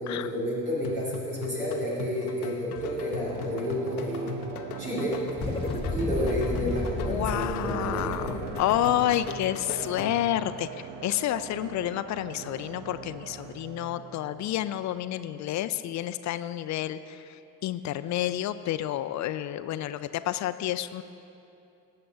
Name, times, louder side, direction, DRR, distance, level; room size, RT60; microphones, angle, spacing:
voice 1, 0.0-4.3 4.8-5.5 5.9-8.5, equal, 85° right, -8 dB, 2.6 m, -31 dB
sound 1, 0.8-10.4, left 5 dB, 80° left, 0.8 m, -39 dB
sound 2, 2.8-15.8 16.2-16.3, right 9 dB, 55° right, 0.7 m, -42 dB
sound 3, 5.4-10.0, left 2 dB, 10° left, 1.2 m, -34 dB
voice 2, 7.1-21.0, left 13 dB, 40° left, 13 dB, 0.4 m, -30 dB
18.0 x 7.7 x 3.5 m, 2.8 s
figure-of-eight pair, 45°, 44 cm